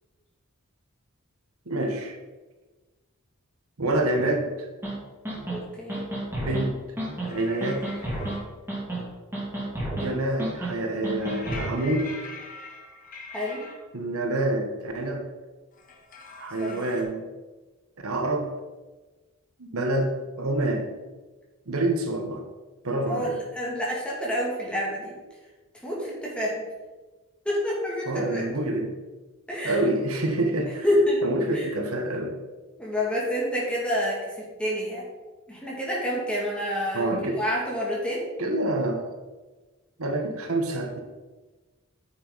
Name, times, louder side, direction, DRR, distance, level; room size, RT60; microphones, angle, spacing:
voice 1, 1.7-2.2 3.8-4.7 6.4-6.8 7.2-8.0 9.9-12.1 13.9-15.3 16.4-17.3 18.0-18.5 19.6-20.9 21.7-22.4 22.8-23.4 28.1-28.9 29.6-30.8 31.2-32.4 36.9-37.4 38.4-39.0 40.0-41.0, right 1 dB, 80° right, 3 dB, 1.3 m, -27 dB
sound 1, 4.8-4.9 5.2-5.6 5.9-6.6 7.0-7.3 7.6-8.4 8.7-9.1 9.3-10.1 10.4-10.7 11.0-11.7, right 1 dB, 10° right, 2.7 m, -31 dB
voice 2, 5.5-6.1 13.3-13.7 16.6-16.8 23.1-25.2 25.8-26.6 27.4-28.4 29.5-29.9 30.7-31.2 31.5-31.7 32.8-35.1 35.5-38.3, equal, 5° left, -5 dB, 2.5 m, -28 dB
sound 2, 7.2-8.4 11.2-13.7 15.7-17.0, left 3 dB, 40° left, 1.4 m, -42 dB
9.4 x 6.9 x 4.1 m, 1.2 s
head